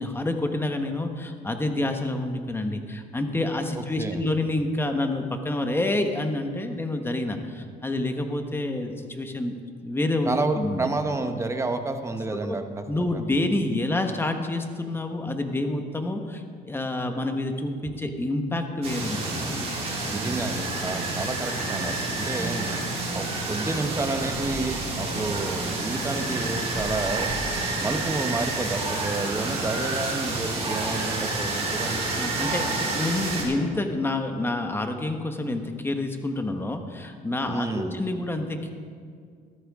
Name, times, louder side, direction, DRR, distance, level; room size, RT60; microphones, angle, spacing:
voice 1, 0.0-9.5 9.8-10.9 12.5-12.6 12.9-19.7 32.1-38.7, left 2 dB, 15° left, 5 dB, 1.2 m, -28 dB
voice 2, 3.7-4.2 10.2-13.2 20.1-22.7 23.1-27.3 27.8-32.1 37.5-38.0, right 3 dB, 15° right, 7 dB, 1.0 m, -30 dB
sound 1, 18.8-33.4, right 2 dB, 40° right, 3.8 m, -29 dB
14.5 x 13.5 x 3.7 m, 2.1 s
cardioid pair, 110°, 17 cm